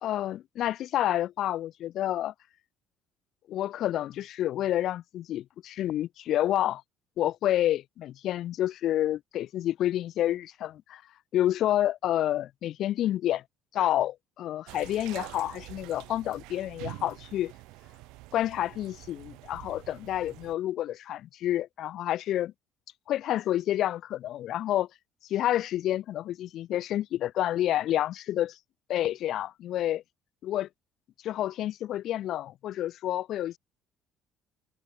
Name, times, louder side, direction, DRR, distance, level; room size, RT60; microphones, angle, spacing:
voice 1, 0.0-2.3 3.5-6.8 7.2-11.0 11.3-13.4 13.7-17.5 18.3-22.5 23.1-24.9 25.3-28.6 28.9-30.0 30.4-30.7 31.2-33.6, left 12 dB, 65° left, 2.2 m, -29 dB
sound 1, 14.7-20.5, right 22 dB, 85° right, 3.8 m, -46 dB
cardioid pair, 95°, 0 cm